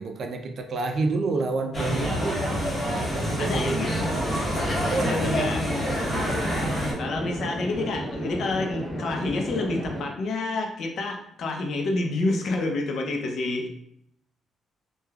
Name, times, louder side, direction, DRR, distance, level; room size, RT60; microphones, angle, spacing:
voice 1, 0.0-2.4 2.9-3.8 4.9-5.5, right 3 dB, 55° right, 4 dB, 0.4 m, -30 dB
sound 1, 1.7-6.9, equal, 20° left, 1.0 m, -27 dB
voice 2, 3.4-4.1 5.0-5.6 7.0-13.7, left 2 dB, 65° left, 2 dB, 0.5 m, -28 dB
sound 2, 3.7-10.0, equal, 10° right, 1.0 m, -33 dB
3.2 x 2.2 x 2.3 m, 0.72 s
cardioid pair, 90°, 0 cm